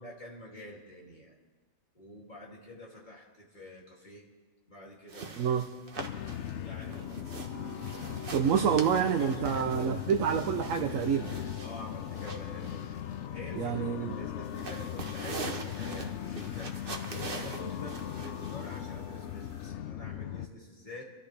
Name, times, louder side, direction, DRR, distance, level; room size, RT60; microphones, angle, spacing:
voice 1, 0.0-1.4 1.9-4.2 4.7-5.5 5.9-6.1 6.6-7.1 8.7-8.8 9.2-10.1 11.6-12.8 13.3-16.7 17.2-21.0, left 1 dB, 35° left, -4 dB, 2.9 m, -47 dB
sound 1, 5.1-19.7, right 3 dB, 45° right, 1.3 m, -44 dB
sound 2, 6.0-20.5, left 10 dB, 65° left, 0.9 m, -39 dB
sound 3, 7.3-13.8, right 5 dB, 10° right, 5.4 m, -53 dB
voice 2, 8.3-11.3 13.6-14.1, right 7 dB, 75° right, 5 dB, 1.2 m, -27 dB
26.5 x 13.5 x 3.4 m, 1.4 s
omnidirectional pair, 1.4 m